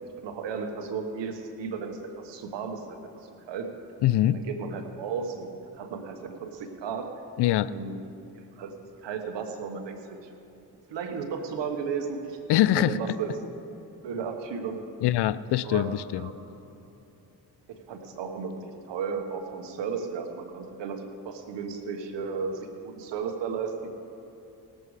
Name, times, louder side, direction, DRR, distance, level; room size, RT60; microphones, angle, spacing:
voice 1, 0.0-3.0 3.5-3.7 4.3-7.1 7.6-8.0 8.3-8.7 9.0-10.3 10.9-12.4 12.7-13.3 14.0-14.8 15.6-16.4 17.7-23.9, right 5 dB, 80° right, 5 dB, 1.4 m, -34 dB
voice 2, 4.0-4.4 7.4-7.7 12.5-13.0 15.0-16.3, left 13 dB, 70° left, 17 dB, 0.5 m, -23 dB
18.5 x 7.8 x 4.9 m, 2.9 s
cardioid pair, 65°, 42 cm